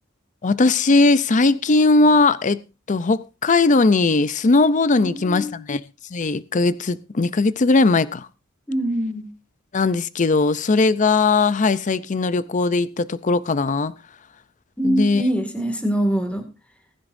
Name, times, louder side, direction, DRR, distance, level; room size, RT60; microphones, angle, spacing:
voice 1, 0.4-2.6 2.9-5.8 6.1-8.3 9.7-13.9 14.8-15.2, left 3 dB, 40° left, 0.5 m, -19 dB
voice 2, 5.0-5.6 8.7-9.3 14.8-16.5, right 1 dB, 5° left, 2.1 m, -24 dB
20.5 x 10.5 x 2.6 m
head